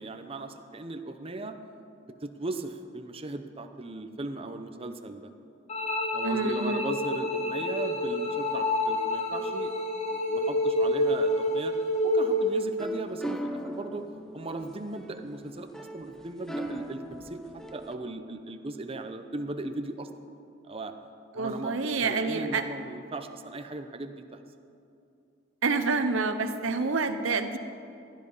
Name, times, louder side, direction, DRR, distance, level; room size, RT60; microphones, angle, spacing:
voice 1, 0.0-1.6 2.2-5.3 6.1-9.7 10.1-11.7 12.0-14.0 14.3-15.7 15.9-17.4 17.7-20.1 20.6-20.9 21.3-21.7 22.0-24.4, right 2 dB, 30° right, 7 dB, 0.7 m, -37 dB
sound 1, 5.7-12.7, left 1 dB, 35° left, 1.7 m, -28 dB
voice 2, 6.2-6.9 21.3-22.6 25.6-27.6, right 4 dB, 90° right, 8 dB, 0.8 m, -28 dB
sound 2, 12.5-17.9, right 1 dB, 5° left, 0.7 m, -39 dB
16.5 x 10.5 x 5.5 m, 2.6 s
head